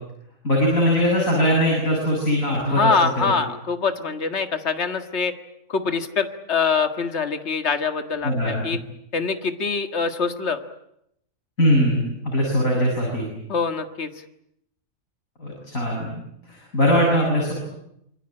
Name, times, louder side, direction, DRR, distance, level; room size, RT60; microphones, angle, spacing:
voice 1, 0.4-2.9 8.2-8.6 11.6-13.3 15.4-16.2 16.5-17.5, equal, 75° left, -2 dB, 8.1 m, -21 dB
voice 2, 2.7-5.3 5.7-8.3 8.6-8.8 9.1-10.6 13.5-14.1, left 5 dB, 50° left, 8 dB, 2.1 m, -24 dB
27.0 x 23.0 x 8.9 m, 0.77 s
omnidirectional pair, 1.4 m